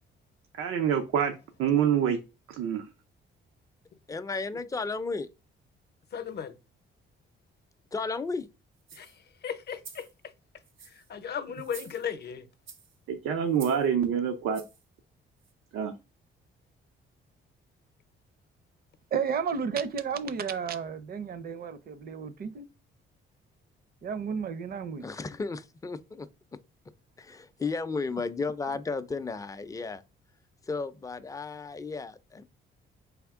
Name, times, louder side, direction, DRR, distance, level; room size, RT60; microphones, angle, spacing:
voice 1, 0.6-2.2 2.6-2.9 13.1-14.6 15.7-15.9, right 8 dB, 90° right, 0.6 m, -26 dB
voice 2, 4.1-5.3 7.9-8.5 25.0-26.3 27.2-30.0 30.7-32.4, left 4 dB, 15° left, 0.4 m, -34 dB
voice 3, 6.1-6.5 8.9-10.1 10.9-12.5, left 7 dB, 50° left, 0.7 m, -36 dB
sound 1, 8.8-9.2 9.7-10.1 10.6-11.1 11.6-12.2 12.7-13.0 13.5-13.9 14.5-14.8 15.4-15.5, right 6 dB, 70° right, 1.0 m, -48 dB
voice 4, 19.1-22.7 24.0-25.0, right 6 dB, 45° right, 0.6 m, -32 dB
4.2 x 3.5 x 3.5 m
cardioid pair, 100°, 21 cm